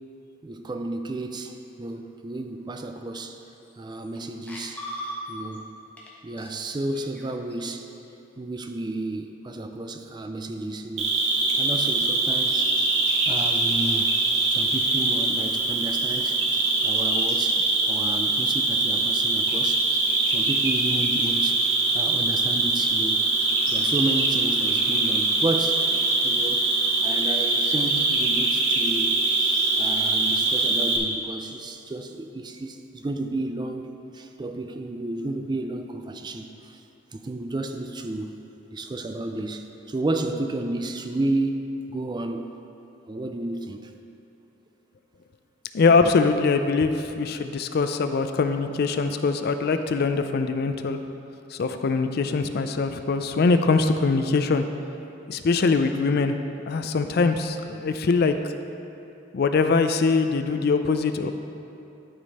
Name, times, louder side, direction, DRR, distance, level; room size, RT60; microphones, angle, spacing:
voice 1, 0.4-3.4 3.8-4.8 5.3-5.7 6.2-7.9 8.4-11.1 11.5-12.7 13.3-14.1 14.5-16.4 16.8-19.8 20.2-21.6 21.9-23.3 23.7-25.8 26.2-26.7 27.0-29.2 29.8-33.9 34.1-36.8 37.1-38.4 38.7-42.5 43.1-43.9, right 2 dB, 20° right, 6 dB, 0.4 m, -32 dB
sound 1, 3.2-3.3 3.6-4.2 4.5-5.6 6.0-6.1 6.4-7.7, equal, 10° left, 1.1 m, -38 dB
Cricket, 11.0-31.0, right 3 dB, 80° right, 1.1 m, -23 dB
voice 2, 45.7-51.0 51.6-54.7 55.3-56.4 56.7-58.3 59.3-61.3, left 4 dB, 55° left, 8 dB, 0.4 m, -22 dB
11.5 x 5.2 x 4.1 m, 2.8 s
head